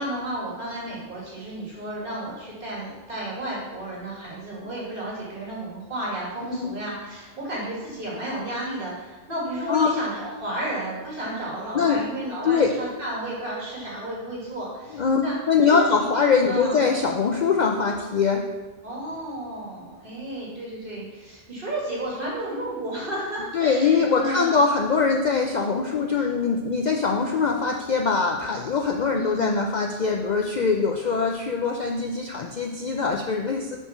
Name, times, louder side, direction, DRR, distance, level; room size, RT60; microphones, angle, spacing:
voice 1, 0.0-15.3 15.7-16.2 16.5-16.8 18.8-24.6 29.1-29.5, right 1 dB, 50° right, -5 dB, 2.4 m, -32 dB
voice 2, 9.7-10.0 11.7-12.0 12.4-12.8 14.9-18.5 23.5-33.8, left 5 dB, 55° left, 2 dB, 0.5 m, -22 dB
5.7 x 4.6 x 5.6 m, 1.3 s
omnidirectional pair, 1.2 m